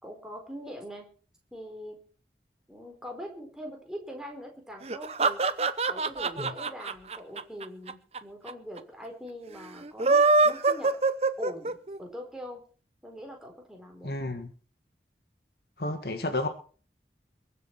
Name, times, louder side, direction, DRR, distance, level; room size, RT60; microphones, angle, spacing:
voice 1, 0.0-1.1 1.5-2.0 2.7-5.4 5.9-10.9 11.4-12.6 13.0-14.1, equal, 5° right, 1 dB, 4.3 m, -42 dB
sound 1, 4.8-8.2 8.5-8.6 8.8-8.9 9.8-12.0, right 3 dB, 35° right, 0.8 m, -24 dB
voice 2, 14.0-14.5 15.8-16.5, left 2 dB, 65° left, 8 dB, 1.8 m, -31 dB
22.5 x 7.9 x 5.9 m, 0.41 s
head